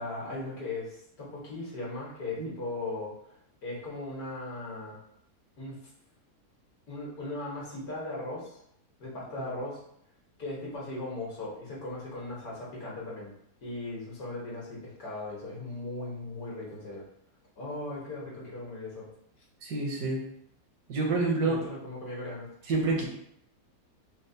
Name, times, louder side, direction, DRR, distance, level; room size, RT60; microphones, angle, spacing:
voice 1, 0.0-3.1 3.6-5.0 5.6-5.8 6.9-8.6 9.0-9.8 10.4-13.3 13.6-17.0 17.6-19.1 21.4-22.5, left 2 dB, 75° left, -5 dB, 1.6 m, -38 dB
voice 2, 19.6-20.2 20.9-21.6 22.7-23.1, right 3 dB, 85° right, 0 dB, 1.3 m, -28 dB
4.2 x 2.0 x 2.6 m, 0.72 s
omnidirectional pair, 1.6 m